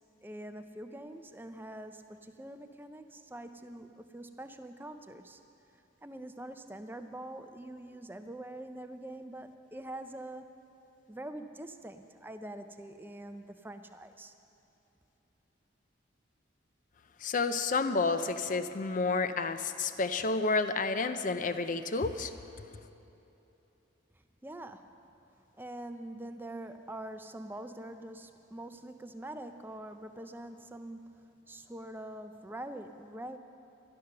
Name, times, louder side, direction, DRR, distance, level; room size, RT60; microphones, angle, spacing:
voice 1, 0.2-5.4 6.0-10.5 11.1-14.3 24.4-25.0 25.6-33.4, right 1 dB, 10° right, 8 dB, 0.5 m, -44 dB
voice 2, 17.2-22.3, left 3 dB, 45° left, 10 dB, 0.5 m, -30 dB
12.5 x 11.5 x 6.6 m, 3.0 s
head